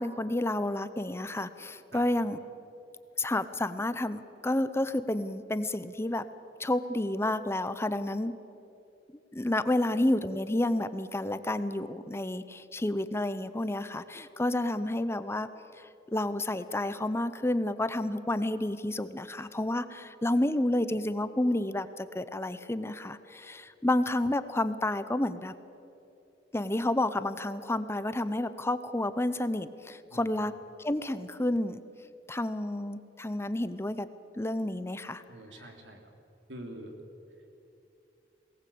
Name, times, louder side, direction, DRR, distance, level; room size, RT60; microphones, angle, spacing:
voice 1, 0.0-2.4 3.2-6.2 6.6-8.3 9.3-15.5 15.8-25.5 26.5-30.5 30.8-31.8 32.3-34.1 34.4-35.2, left 1 dB, 15° left, 13 dB, 0.7 m, -30 dB
voice 2, 35.3-36.1 36.5-37.0 37.4-37.5, right 1 dB, 85° right, 4 dB, 3.3 m, -45 dB
22.5 x 18.5 x 8.6 m, 2.7 s
head